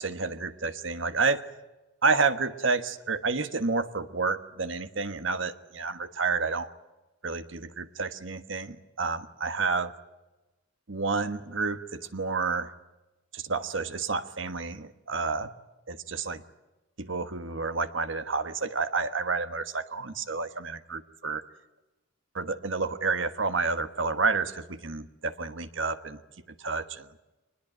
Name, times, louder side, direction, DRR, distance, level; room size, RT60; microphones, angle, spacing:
voice 1, 0.0-1.4 2.0-6.7 7.2-9.9 10.9-12.7 13.3-15.5 15.9-16.4 17.0-21.4 22.3-26.2 26.6-27.1, right 4 dB, 70° right, 10 dB, 1.4 m, -30 dB
23.5 x 20.5 x 9.1 m, 1.1 s
head